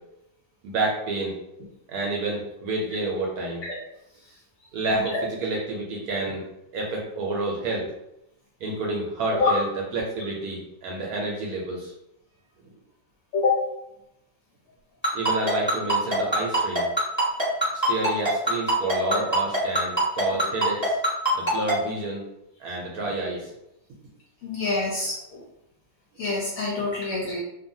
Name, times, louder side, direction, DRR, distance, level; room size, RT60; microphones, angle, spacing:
voice 1, 0.6-3.7 4.7-6.4 6.7-7.9 8.6-9.7 9.9-11.9 15.1-16.9 17.9-21.0 21.3-22.2 22.6-23.5 27.2-27.4, right 2 dB, 70° right, -2 dB, 0.9 m, -29 dB
Ringtone, 15.0-21.7, right 1 dB, 10° left, 0.9 m, -22 dB
voice 2, 24.4-25.4 26.2-27.4, left 4 dB, 70° left, -4 dB, 0.8 m, -26 dB
2.7 x 2.3 x 2.6 m, 0.84 s
omnidirectional pair, 1.9 m